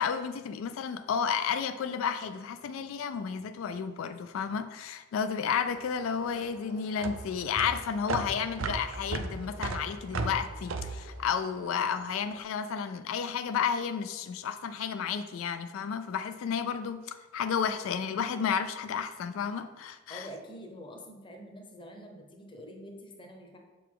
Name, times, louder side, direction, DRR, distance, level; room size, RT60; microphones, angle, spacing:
voice 1, 0.0-20.3, left 7 dB, 80° left, 10 dB, 0.3 m, -32 dB
sound 1, 5.7-12.2, right 3 dB, 75° right, 0.5 m, -36 dB
voice 2, 20.1-23.6, equal, 25° left, 2 dB, 0.8 m, -46 dB
6.7 x 3.9 x 4.7 m, 1.2 s
head